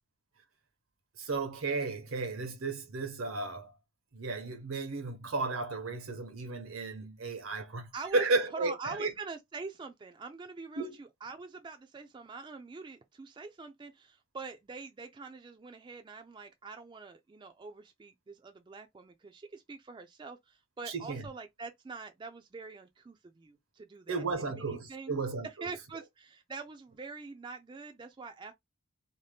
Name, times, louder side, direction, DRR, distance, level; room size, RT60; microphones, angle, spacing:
voice 1, 1.2-3.7 4.1-9.1 10.8-10.9 20.9-21.2 24.1-25.7, right 3 dB, 85° right, 0.9 m, -34 dB
voice 2, 7.9-8.3 8.5-25.1 25.4-28.5, right 4 dB, 20° right, 0.3 m, -44 dB
2.7 x 2.1 x 3.3 m
head